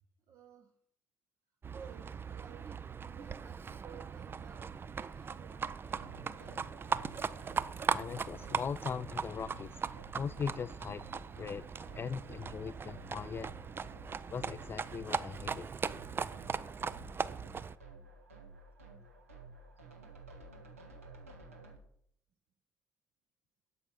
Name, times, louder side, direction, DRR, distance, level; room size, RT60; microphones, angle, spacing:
voice 1, 0.3-0.7 1.7-2.8 3.1-6.7, right 7 dB, 50° right, 4 dB, 1.0 m, -56 dB
Livestock farm animals working animals, 1.6-17.7, right 6 dB, 30° right, 0.5 m, -39 dB
sound 1, 5.9-21.8, right 3 dB, 85° right, 1.4 m, -54 dB
voice 2, 7.9-9.7 10.2-11.0 11.4-11.6 11.9-13.5 14.3-15.7, left 6 dB, 30° left, 12 dB, 0.4 m, -39 dB
8.1 x 7.7 x 5.7 m, 0.67 s
figure-of-eight pair, 50°, 7 cm